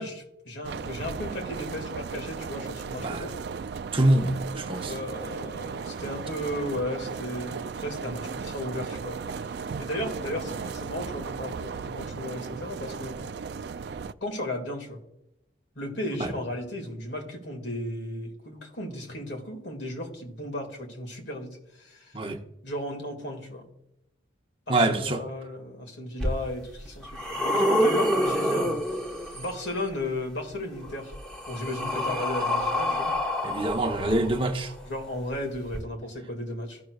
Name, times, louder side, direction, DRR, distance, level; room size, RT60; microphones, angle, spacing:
voice 1, 0.0-3.3 4.8-13.2 14.2-15.0 15.7-22.2 22.6-23.7 24.7-29.0 29.3-31.2 31.5-33.2 34.9-36.8, left 1 dB, 70° left, 2.2 m, -35 dB
sound 1, 0.6-14.1, right 5 dB, 55° right, 0.3 m, -36 dB
voice 2, 3.9-4.9 16.2-16.3 22.1-22.4 24.7-25.2 33.4-34.7, right 1 dB, 25° right, 0.8 m, -25 dB
sound 2, 26.2-26.3 26.9-29.6 30.8-34.7 35.7-35.8, left 1 dB, 5° left, 1.1 m, -27 dB
15.5 x 6.3 x 2.4 m
head